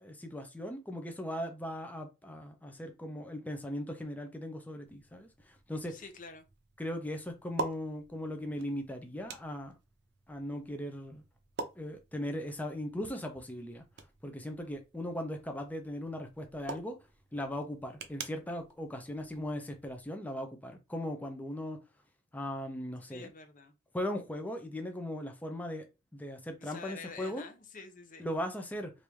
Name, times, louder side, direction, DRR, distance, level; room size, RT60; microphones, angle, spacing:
voice 1, 0.0-6.0 6.8-9.8 10.3-11.2 11.8-13.8 14.2-17.0 17.3-21.8 22.3-23.3 23.9-25.8 26.1-27.4 28.2-28.9, left 1 dB, 10° left, 0.5 m, -38 dB
sound 1, 4.9-20.1, right 4 dB, 60° right, 0.6 m, -47 dB
voice 2, 5.9-6.4 23.1-23.7 26.6-28.3, left 4 dB, 45° left, 0.7 m, -48 dB
3.4 x 2.6 x 3.1 m
head